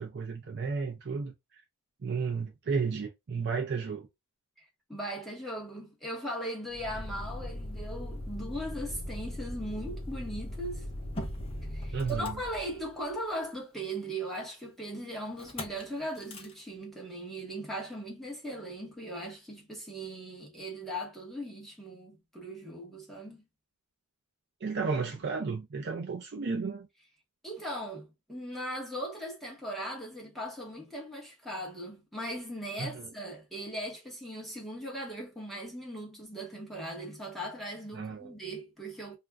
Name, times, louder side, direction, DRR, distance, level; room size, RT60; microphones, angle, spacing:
voice 1, 0.0-1.6 2.0-4.1 11.9-12.4 24.6-26.9 32.8-33.1 37.9-38.3, right 5 dB, 50° right, 0.5 m, -33 dB
voice 2, 4.6-10.9 11.7-23.4 27.4-39.2, right 1 dB, ahead, 0.8 m, -39 dB
Motor vehicle (road), 6.7-13.1 15.4-15.8 16.2-16.5, left 1 dB, 25° left, 0.6 m, -39 dB
2.4 x 2.1 x 3.3 m
head